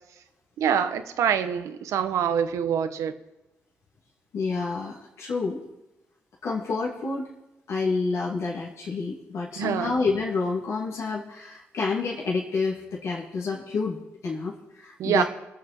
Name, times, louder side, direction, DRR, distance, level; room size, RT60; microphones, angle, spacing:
voice 1, 0.6-3.1 9.6-9.9 15.0-15.2, right 8 dB, 75° right, 10 dB, 1.1 m, -25 dB
voice 2, 4.3-5.6 6.4-7.3 7.7-15.2, left 4 dB, 65° left, -5 dB, 2.8 m, -29 dB
22.5 x 7.6 x 4.5 m, 0.99 s
supercardioid pair, 60°, 5 cm